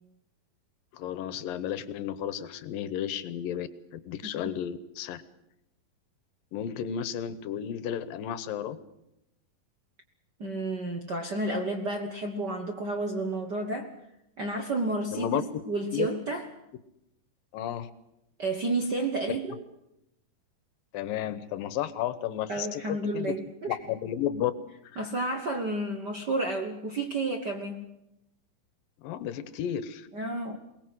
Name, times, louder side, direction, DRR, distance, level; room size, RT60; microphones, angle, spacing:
voice 1, 0.9-3.7 4.0-5.2 6.5-8.8 15.1-15.6 15.9-16.1 17.5-17.9 20.9-23.3 23.7-24.5 24.9-25.0 29.0-30.1, left 10 dB, 75° left, 14 dB, 2.7 m, -32 dB
voice 2, 10.4-13.9 14.4-16.5 18.4-19.6 22.5-23.7 25.0-27.8 30.1-30.6, right 2 dB, 70° right, 5 dB, 0.9 m, -31 dB
22.5 x 19.5 x 7.9 m, 0.85 s
omnidirectional pair, 4.3 m